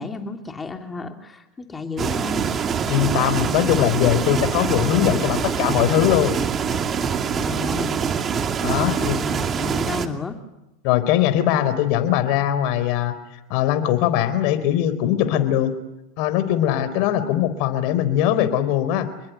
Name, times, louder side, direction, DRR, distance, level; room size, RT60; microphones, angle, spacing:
voice 1, 0.0-2.6 7.3-8.0 8.4-10.4, left 4 dB, 20° left, 5 dB, 3.1 m, -32 dB
sound 1, 2.0-10.1, right 6 dB, 30° right, 2.5 m, -24 dB
voice 2, 2.9-6.4 8.6-9.2 10.8-13.1 13.5-15.7 16.2-19.1, left 11 dB, 60° left, 12 dB, 4.0 m, -21 dB
28.5 x 22.0 x 9.4 m, 0.91 s
hypercardioid pair, 95°, 0 cm